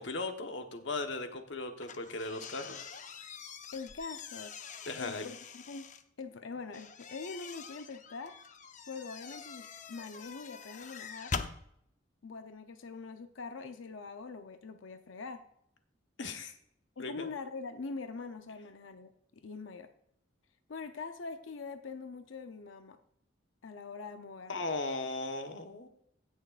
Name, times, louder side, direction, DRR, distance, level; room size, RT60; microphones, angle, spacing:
voice 1, 0.0-2.9 4.9-5.3 16.2-16.5 17.0-17.3 24.5-25.9, left 3 dB, 70° left, 6 dB, 1.2 m, -37 dB
sound 1, 1.8-6.0 6.7-11.6, left 5 dB, 40° left, 0.6 m, -44 dB
voice 2, 3.7-4.5 5.0-5.9 6.2-8.4 8.9-11.4 12.2-15.4 17.0-19.9 20.7-23.0 23.6-24.6, left 4 dB, 85° left, 8 dB, 0.6 m, -43 dB
17.0 x 6.4 x 2.5 m, 0.73 s
head